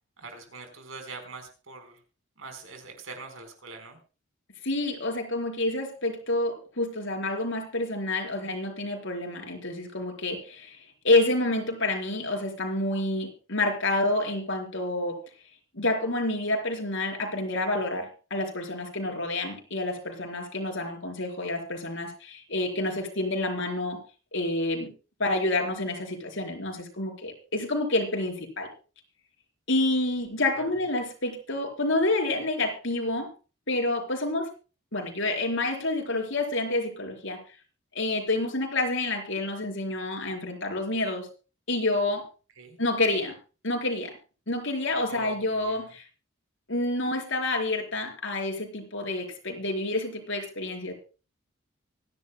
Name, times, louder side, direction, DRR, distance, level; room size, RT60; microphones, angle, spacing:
voice 1, 0.2-2.0 2.4-4.0 30.5-30.6 42.6-42.8 45.1-46.0, right 3 dB, 80° right, 5 dB, 4.4 m, -43 dB
voice 2, 4.6-15.2 15.7-24.0 24.3-24.9 25.2-28.7 29.7-33.3 33.7-34.5 34.9-37.4 37.9-41.3 41.7-42.2 42.8-43.3 43.6-44.1 44.5-46.0 46.7-50.9, left 2 dB, 65° left, 2 dB, 4.2 m, -28 dB
25.5 x 11.0 x 2.2 m, 0.34 s
head